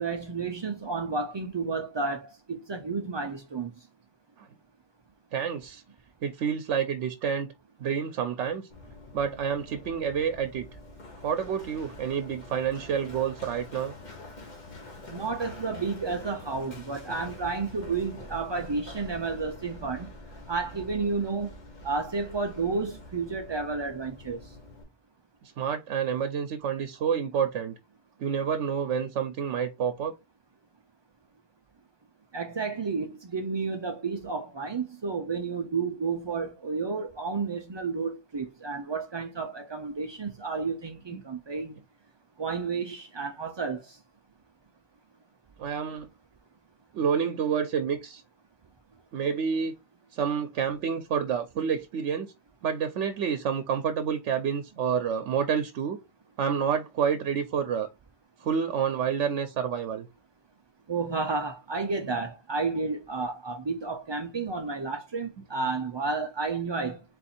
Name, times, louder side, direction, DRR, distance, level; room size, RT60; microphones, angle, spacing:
voice 1, 0.0-3.7 15.1-20.1 20.5-21.5 21.8-24.4 32.3-41.8 42.4-44.0 60.9-67.0, right 4 dB, 40° right, 0.3 m, -31 dB
voice 2, 5.3-5.8 6.2-7.5 7.8-8.7 9.1-10.7 11.2-13.9 25.4-27.8 28.2-30.1 41.1-41.2 45.6-46.1 46.9-48.2 49.1-49.8 50.1-52.3 52.6-56.0 56.4-57.9 58.4-60.1, right 7 dB, 90° right, 0.9 m, -28 dB
Run, 8.7-24.8, left 1 dB, 40° left, 1.1 m, -46 dB
4.2 x 2.6 x 4.2 m
omnidirectional pair, 1.2 m